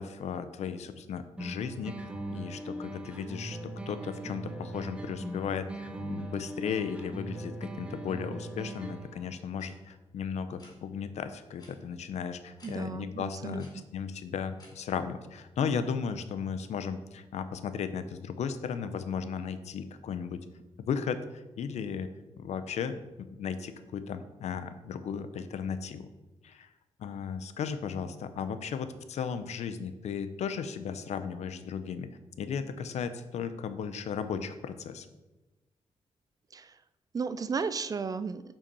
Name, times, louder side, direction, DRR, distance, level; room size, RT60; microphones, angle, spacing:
voice 1, 0.0-3.6 3.9-20.4 20.8-22.1 22.4-22.9 23.4-26.1 26.4-26.7 27.0-32.1 32.4-35.1, left 6 dB, 80° left, 11 dB, 0.7 m, -35 dB
sound 1, 1.4-9.3, right 1 dB, 10° right, 0.7 m, -40 dB
sound 2, 9.6-9.7 10.6-10.8 11.6-11.7 12.6-12.7 13.6-13.7 14.6-14.7, left 1 dB, 35° left, 3.0 m, -54 dB
voice 2, 12.6-13.8 36.5-36.7 37.1-38.4, right 5 dB, 35° right, 13 dB, 0.4 m, -34 dB
7.0 x 5.8 x 5.4 m, 1.1 s
wide cardioid pair, 145°, 11 cm